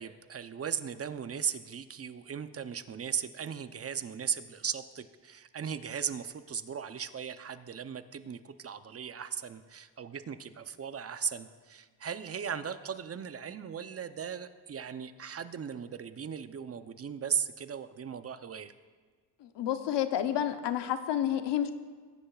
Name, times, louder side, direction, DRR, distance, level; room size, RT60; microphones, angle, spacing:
voice 1, 0.0-18.7, right 7 dB, 35° right, 11 dB, 0.6 m, -37 dB
voice 2, 19.4-21.7, left 10 dB, 70° left, 9 dB, 0.9 m, -30 dB
20.0 x 10.0 x 2.4 m, 1.5 s
cardioid pair, 75°, 44 cm